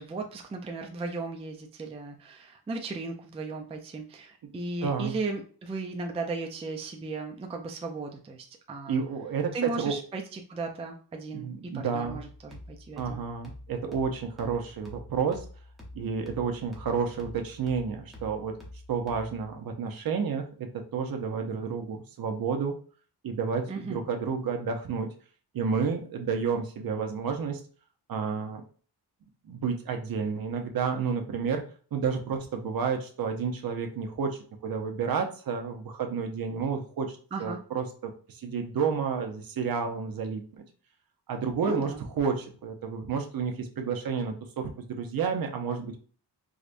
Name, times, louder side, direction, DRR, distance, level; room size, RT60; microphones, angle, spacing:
voice 1, 0.0-9.0 9.5-13.2 23.7-24.0 37.3-37.6 41.6-42.0, right 3 dB, 15° right, 2 dB, 0.3 m, -36 dB
voice 2, 4.8-5.1 8.9-9.9 11.3-12.2 13.0-15.5 15.9-18.6 18.9-22.8 23.2-25.1 25.5-27.6 28.1-28.6 29.5-31.6 31.9-40.6 41.3-41.9 42.2-46.0, right 6 dB, 55° right, 5 dB, 0.6 m, -30 dB
sound 1, 12.0-19.6, left 1 dB, ahead, 0.8 m, -47 dB
4.8 x 2.2 x 2.5 m, 0.42 s
wide cardioid pair, 135°, 42 cm